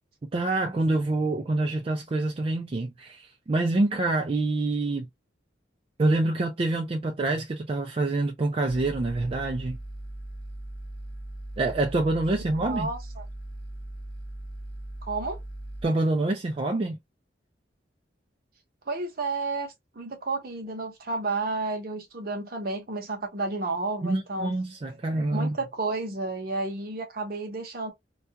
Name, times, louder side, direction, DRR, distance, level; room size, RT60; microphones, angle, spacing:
voice 1, 0.3-5.1 6.0-9.8 11.6-12.9 15.8-17.0 24.0-25.6, right 2 dB, 30° right, 0.3 m, -26 dB
sound 1, 8.7-15.9, right 1 dB, 85° left, 0.8 m, -39 dB
voice 2, 12.6-13.2 15.0-15.4 18.9-24.5 25.3-27.9, right 3 dB, 50° right, 0.7 m, -31 dB
2.3 x 2.3 x 2.7 m
head